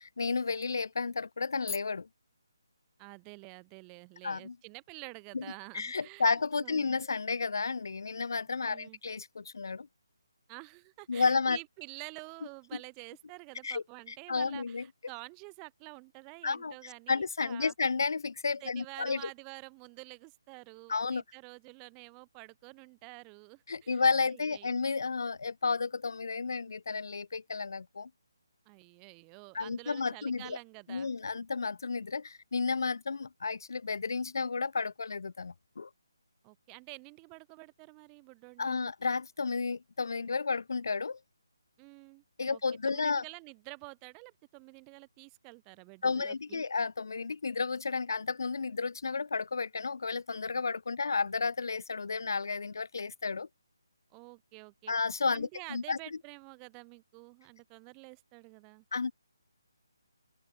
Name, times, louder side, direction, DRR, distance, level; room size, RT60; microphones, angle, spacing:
voice 1, 0.0-2.1 4.2-4.5 5.3-5.4 5.7-9.9 11.1-11.6 13.6-13.8 14.3-14.8 16.4-16.7 17.1-19.3 20.9-21.2 23.7-28.1 29.5-30.6 30.9-35.9 38.6-41.2 42.4-43.2 46.0-53.5 54.9-56.0 58.9-59.1, left 4 dB, 60° left, 3.3 m, -32 dB
voice 2, 3.0-7.0 8.7-9.0 10.5-17.7 18.6-24.0 24.3-24.8 28.7-31.1 36.4-38.9 41.8-42.6 42.9-46.6 54.1-54.9 55.3-58.8, right 39 dB, 20° right, 5.3 m, -49 dB
open air
figure-of-eight pair, 145°, 2 cm